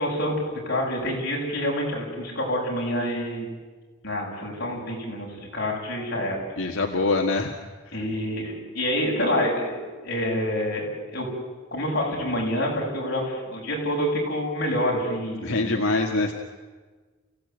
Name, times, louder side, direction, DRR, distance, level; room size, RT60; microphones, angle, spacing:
voice 1, 0.0-3.5 4.0-6.4 7.9-11.3 11.7-15.8, equal, 50° left, -2 dB, 7.6 m, -27 dB
voice 2, 6.6-7.5 15.4-16.3, left 3 dB, 80° left, 2 dB, 1.7 m, -24 dB
29.5 x 16.5 x 9.4 m, 1.4 s
head